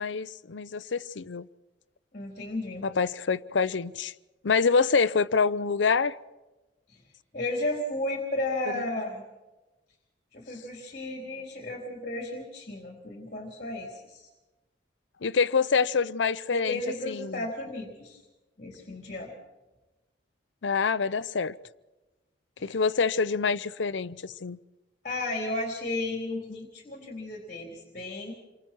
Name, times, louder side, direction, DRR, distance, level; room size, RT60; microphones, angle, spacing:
voice 1, 0.0-1.5 2.8-4.1 4.4-6.1 8.7-8.8 15.2-16.8 17.1-17.4 20.6-21.5 22.6-24.6, left 5 dB, 85° left, 0.6 m, -26 dB
voice 2, 2.1-2.9 6.9-7.0 7.3-9.2 10.3-14.3 16.5-18.2 18.6-19.3 22.6-22.8 25.0-28.3, left 2 dB, 45° left, 3.7 m, -34 dB
28.5 x 23.5 x 4.6 m
head